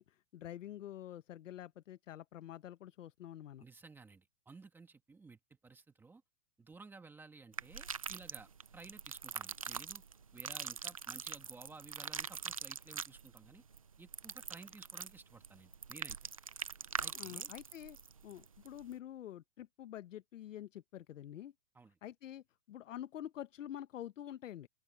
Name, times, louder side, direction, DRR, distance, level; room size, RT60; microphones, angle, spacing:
voice 1, 0.0-3.6 17.1-18.0 18.2-21.5 22.0-24.7, left 11 dB, 55° left, 1.0 m, -47 dB
voice 2, 3.6-6.2 6.6-10.0 10.3-13.6 14.0-16.2 17.0-17.5 21.8-21.9, right 4 dB, 5° right, 1.7 m, -55 dB
sound 1, 7.5-18.9, right 6 dB, 25° right, 0.4 m, -43 dB
open air
hypercardioid pair, 165°, 44 cm